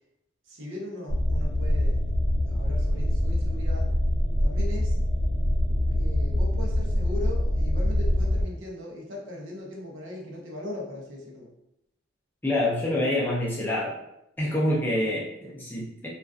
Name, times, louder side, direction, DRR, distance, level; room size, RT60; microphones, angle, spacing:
voice 1, 0.5-3.9 4.4-4.9 5.9-11.5, left 1 dB, 75° right, -1 dB, 0.6 m, -39 dB
sound 1, 1.1-8.4, left 1 dB, 80° left, 0.5 m, -24 dB
voice 2, 12.4-13.9 14.4-16.1, left 1 dB, 10° left, -6 dB, 0.4 m, -26 dB
2.4 x 2.3 x 2.3 m, 0.84 s
head